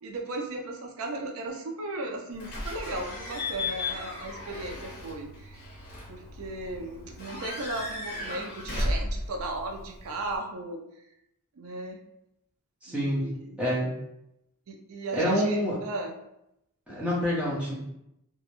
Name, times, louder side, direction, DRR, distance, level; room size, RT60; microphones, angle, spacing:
voice 1, 0.0-5.6 6.1-10.8 11.6-12.0 12.9-13.6 14.7-16.1, right 2 dB, 65° right, 2 dB, 0.4 m, -36 dB
Slam / Squeak / Alarm, 2.4-10.4, left 2 dB, 45° left, 0.7 m, -35 dB
voice 2, 12.8-13.2 13.6-13.9 15.1-15.8 16.9-17.8, equal, 5° right, -8 dB, 0.6 m, -27 dB
2.2 x 2.0 x 2.8 m, 0.82 s
head